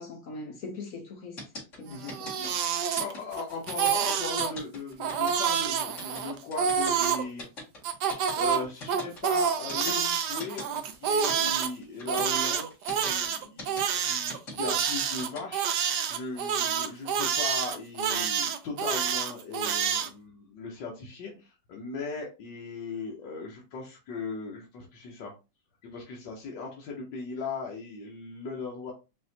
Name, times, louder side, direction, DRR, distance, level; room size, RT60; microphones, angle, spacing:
voice 1, 0.0-1.4 1.8-2.5, left 3 dB, 60° left, 0.9 m, -41 dB
sound 1, 1.4-15.4, left 2 dB, 40° left, 2.3 m, -41 dB
Crying sobbing, 1.9-3.4 3.7-4.5 5.0-7.2 7.8-11.7 12.1-20.1, right 7 dB, 70° right, 1.2 m, -28 dB
voice 2, 3.0-7.5 8.3-25.3 25.8-28.9, left 4 dB, 75° left, 1.5 m, -38 dB
5.4 x 2.8 x 2.7 m
omnidirectional pair, 2.0 m